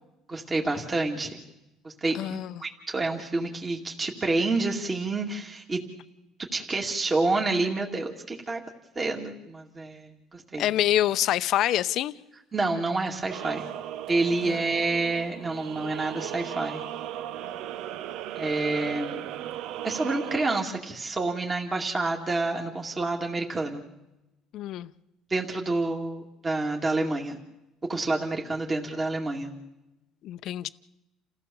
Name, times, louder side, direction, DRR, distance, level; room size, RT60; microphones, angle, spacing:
voice 1, 0.3-1.4 1.8-5.8 6.5-8.6 9.0-10.7 12.5-13.7 14.1-16.8 18.4-19.3 19.8-23.8 25.3-27.4 27.9-29.5, right 3 dB, 25° right, 2.3 m, -28 dB
voice 2, 2.1-2.6 10.6-12.1 14.4-14.6 24.5-24.9 30.2-30.7, left 13 dB, 65° left, 0.7 m, -26 dB
sound 1, 13.3-20.6, right 11 dB, 70° right, 0.7 m, -36 dB
29.0 x 15.5 x 7.0 m
cardioid pair, 105°, 0 cm